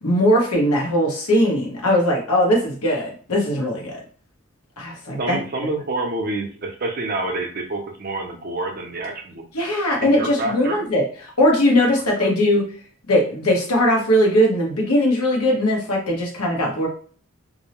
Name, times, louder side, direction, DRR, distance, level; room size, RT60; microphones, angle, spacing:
voice 1, 0.0-4.0 4.8-5.4 9.5-11.0 11.4-12.6 13.1-16.9, equal, 90° left, -1 dB, 1.0 m, -19 dB
voice 2, 5.2-9.4 10.0-10.8, right 2 dB, 40° right, 2 dB, 0.5 m, -27 dB
2.6 x 2.0 x 2.8 m, 0.43 s
head